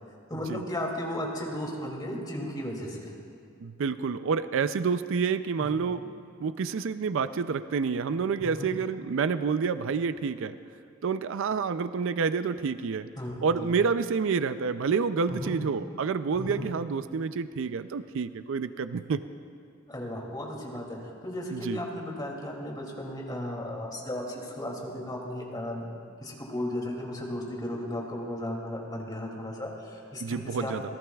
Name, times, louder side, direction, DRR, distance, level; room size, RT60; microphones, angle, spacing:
voice 1, 0.3-3.1 5.6-5.9 8.4-8.7 13.2-13.7 15.3-15.6 16.3-16.7 19.9-25.9 26.2-30.7, left 1 dB, 20° left, -2 dB, 2.6 m, -35 dB
voice 2, 3.6-6.0 6.4-10.5 11.0-13.1 13.4-19.2 21.5-21.8 30.2-30.8, right 5 dB, 70° right, 12 dB, 0.4 m, -28 dB
26.5 x 18.0 x 2.3 m, 2.4 s
head